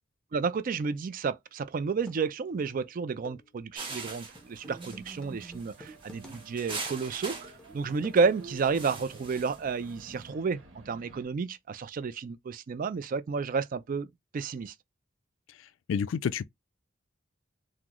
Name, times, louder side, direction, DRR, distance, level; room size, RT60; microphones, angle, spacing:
voice 1, 0.3-10.6 10.9-14.7, right 5 dB, 45° right, 0.3 m, -31 dB
sound 1, 1.5-1.6 1.9-8.6, left 2 dB, 5° left, 0.7 m, -54 dB
sound 2, 3.7-10.1, right 3 dB, 25° right, 1.0 m, -42 dB
sound 3, 4.0-11.3, right 3 dB, 65° right, 1.1 m, -53 dB
voice 2, 15.9-16.4, left 7 dB, 70° left, 0.3 m, -28 dB
3.6 x 2.0 x 3.0 m
head